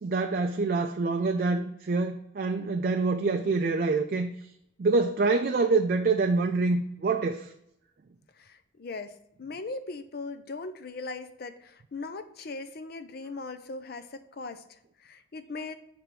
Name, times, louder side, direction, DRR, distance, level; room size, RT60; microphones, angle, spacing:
voice 1, 0.0-4.3 4.8-7.5, right 3 dB, 45° right, 0.3 m, -26 dB
voice 2, 8.4-15.7, left 3 dB, 50° left, 0.5 m, -39 dB
6.5 x 3.4 x 5.8 m
head